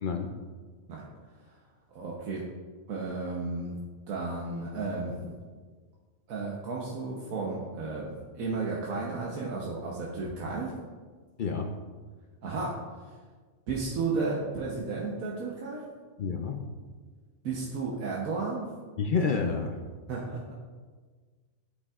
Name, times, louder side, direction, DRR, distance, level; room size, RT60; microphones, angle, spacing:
voice 1, 0.0-0.3 11.4-11.8 16.2-16.7 19.0-19.8, left 5 dB, 65° left, 3 dB, 0.5 m, -29 dB
voice 2, 1.9-2.4 2.9-3.7 4.1-5.4 6.3-10.7 12.4-12.7 13.7-15.8 17.4-18.7 20.1-20.5, right 3 dB, 85° right, -3 dB, 1.3 m, -33 dB
12.0 x 5.4 x 2.4 m, 1.5 s
omnidirectional pair, 1.4 m